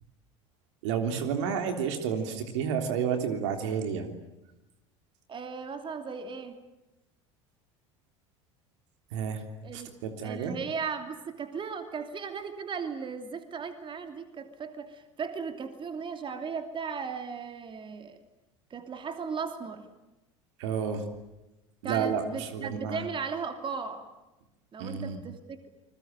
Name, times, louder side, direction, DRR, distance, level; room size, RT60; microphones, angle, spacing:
voice 1, 0.8-4.1 9.1-9.4 9.7-10.6 20.6-21.0 21.8-23.0 24.8-25.2, right 7 dB, 65° right, 6 dB, 3.4 m, -30 dB
voice 2, 5.3-6.6 9.6-9.9 10.2-18.2 18.7-19.9 21.8-24.1 24.7-25.7, right 5 dB, 30° right, 7 dB, 2.9 m, -36 dB
29.0 x 21.5 x 9.0 m, 0.99 s
hypercardioid pair, 75°, 16 cm